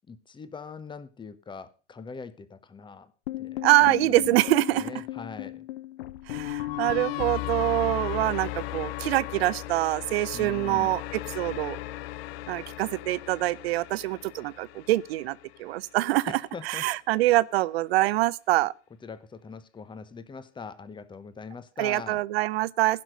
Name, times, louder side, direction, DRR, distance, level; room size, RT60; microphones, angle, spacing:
voice 1, 0.1-3.1 3.4-4.4 4.8-5.6 10.3-10.9 16.3-16.8 19.0-22.2, left 5 dB, 15° left, 1.0 m, -42 dB
sound 1, 3.3-15.5, left 15 dB, 55° left, 0.7 m, -36 dB
voice 2, 3.6-4.9 6.3-11.0 11.3-11.8 12.5-18.7 21.8-23.0, right 17 dB, 60° right, 0.7 m, -25 dB
16.0 x 6.0 x 6.6 m
hypercardioid pair, 95°, 35 cm